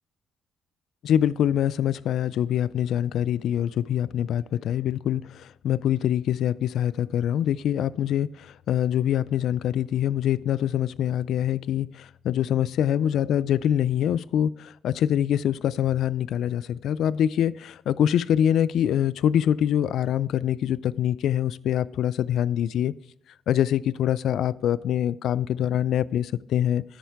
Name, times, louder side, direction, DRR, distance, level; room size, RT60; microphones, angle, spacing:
voice 1, 1.0-22.9 23.5-26.8, left 10 dB, 75° left, 20 dB, 0.3 m, -24 dB
10.0 x 8.9 x 3.5 m, 0.77 s
cardioid pair, 90°, 0 cm